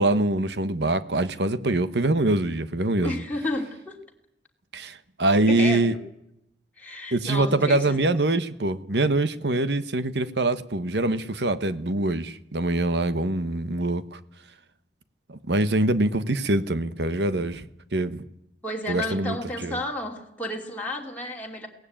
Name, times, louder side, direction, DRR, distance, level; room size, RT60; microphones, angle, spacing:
voice 1, 0.0-3.1 4.7-5.9 7.1-14.2 15.3-18.2 18.9-19.4 19.6-19.8, right 2 dB, 70° right, 1.2 m, -24 dB
voice 2, 3.0-4.0 5.5-5.9 6.8-8.0 16.3-16.6 18.6-21.7, left 1 dB, 10° left, 2.9 m, -32 dB
22.5 x 17.5 x 8.9 m
head